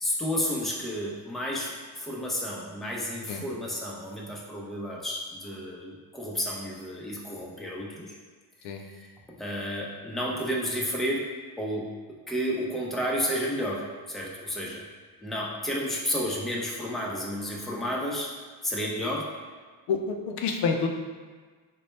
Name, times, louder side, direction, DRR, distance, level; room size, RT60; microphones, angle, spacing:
voice 1, 0.0-8.1 9.0-9.1 9.4-11.3 11.6-11.9 12.3-13.8 14.1-14.8 15.2-18.3 18.6-19.3, equal, ahead, -3 dB, 0.5 m, -31 dB
voice 2, 19.9-20.9, left 5 dB, 75° left, 3 dB, 0.5 m, -28 dB
4.0 x 2.2 x 3.1 m, 1.5 s
cardioid pair, 95°, 41 cm